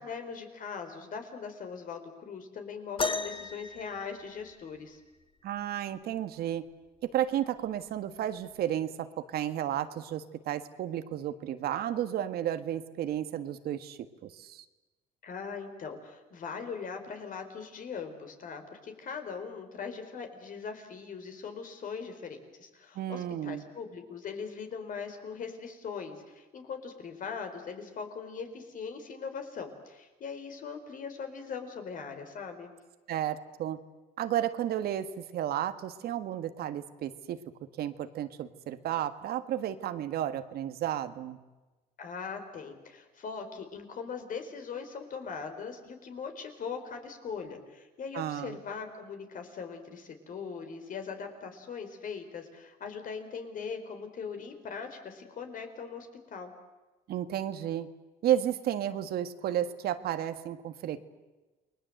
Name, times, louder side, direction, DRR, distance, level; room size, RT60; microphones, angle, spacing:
voice 1, 0.0-5.0 15.2-32.7 42.0-56.5, left 5 dB, 55° left, 6 dB, 4.5 m, -40 dB
sound 1, 3.0-4.9 6.5-6.6 7.4-7.7 8.6-8.7, left 4 dB, 30° left, 1.7 m, -35 dB
voice 2, 5.4-6.6 7.0-9.1 9.3-14.7 23.0-23.6 33.1-33.8 34.2-37.4 37.8-41.4 48.1-48.6 57.1-57.9 58.2-61.0, right 11 dB, 70° right, 10 dB, 1.7 m, -32 dB
29.0 x 21.0 x 8.0 m, 1.1 s
cardioid pair, 110°, 17 cm